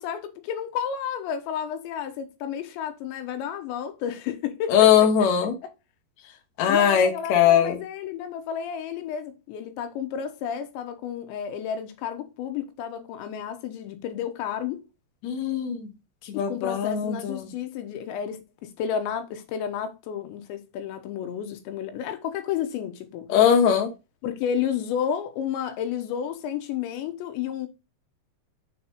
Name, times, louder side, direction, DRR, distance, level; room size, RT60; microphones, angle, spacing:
voice 1, 0.0-5.1 5.6-5.7 6.7-14.8 16.3-23.3 24.2-27.7, left 8 dB, 90° left, 3.1 m, -31 dB
voice 2, 4.7-5.5 6.6-7.8 15.2-15.9 16.3-17.5 23.3-23.9, left 8 dB, 60° left, 1.9 m, -20 dB
6.5 x 4.3 x 4.0 m
omnidirectional pair, 5.2 m